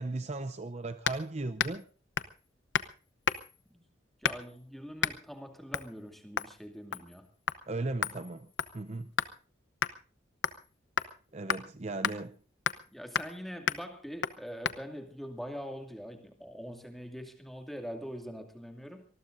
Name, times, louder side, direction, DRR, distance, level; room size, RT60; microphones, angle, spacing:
voice 1, 0.0-1.8 7.7-9.1 11.3-12.4, right 2 dB, 35° right, 10 dB, 0.7 m, -37 dB
sound 1, 1.1-1.3 1.6-1.8 2.2-2.4 2.7-2.9 3.3-3.6 4.2-4.6 5.0-5.2 5.7-5.9 6.4-6.6 6.9-7.2 7.5-7.6 8.0-9.4 9.8-9.9 10.4-10.7 11.0-11.1 11.5-11.6 12.0-12.2 12.7-12.9 13.2-13.4 13.7-13.8 14.2-14.4 14.7-14.8, left 7 dB, 75° left, 0.9 m, -32 dB
voice 2, 4.2-7.3 12.9-19.1, equal, ahead, 4 dB, 2.5 m, -43 dB
25.0 x 20.0 x 2.7 m, 0.38 s
head